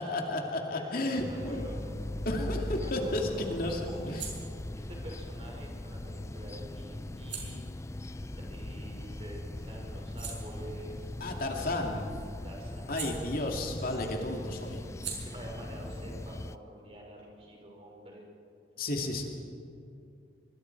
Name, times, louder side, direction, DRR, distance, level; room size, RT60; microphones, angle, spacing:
voice 1, 0.0-1.6 2.2-4.3 11.2-12.1 12.9-14.8 18.8-19.2, left 1 dB, 55° left, 1 dB, 2.5 m, -33 dB
voice 2, 0.7-2.0 2.7-4.2 4.7-7.6 8.1-11.1 11.9-12.1 12.4-12.9 13.4-13.5 15.1-18.2 19.0-19.1, right 1 dB, 35° right, -1 dB, 5.7 m, -47 dB
sound 1, 1.2-16.6, left 1 dB, 15° left, 0.4 m, -40 dB
sound 2, 4.0-9.3 9.7-13.9 14.1-17.6, right 6 dB, 80° right, 5.8 m, -48 dB
25.5 x 24.0 x 4.7 m, 2.6 s
head